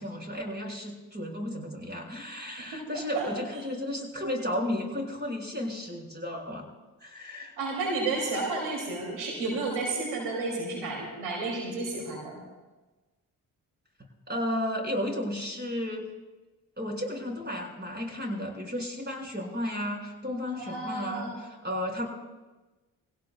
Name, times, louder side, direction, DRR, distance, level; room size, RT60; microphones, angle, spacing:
voice 1, 0.0-6.6 7.0-7.6 14.3-16.1 16.8-22.1, left 1 dB, 25° right, 1 dB, 5.9 m, -33 dB
voice 2, 7.6-12.4 20.6-21.4, right 3 dB, 80° right, -1 dB, 2.9 m, -32 dB
24.0 x 17.0 x 2.3 m, 1.2 s
hypercardioid pair, 45°, 42 cm